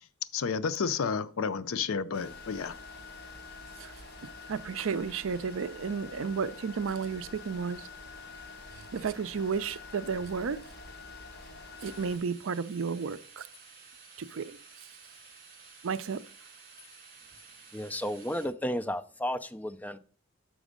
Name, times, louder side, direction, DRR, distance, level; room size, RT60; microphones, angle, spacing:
voice 1, 0.3-2.8, left 5 dB, 70° left, 0.5 m, -31 dB
sound 1, 2.1-12.2, left 4 dB, 50° left, 1.2 m, -47 dB
voice 2, 4.5-7.9 8.9-10.7 11.8-13.5 14.2-14.6 15.8-16.2, right 5 dB, 65° right, 0.4 m, -32 dB
sound 2, 11.8-18.5, right 4 dB, 45° right, 2.5 m, -53 dB
voice 3, 17.7-20.0, equal, 5° left, 0.3 m, -33 dB
6.2 x 5.1 x 5.0 m
head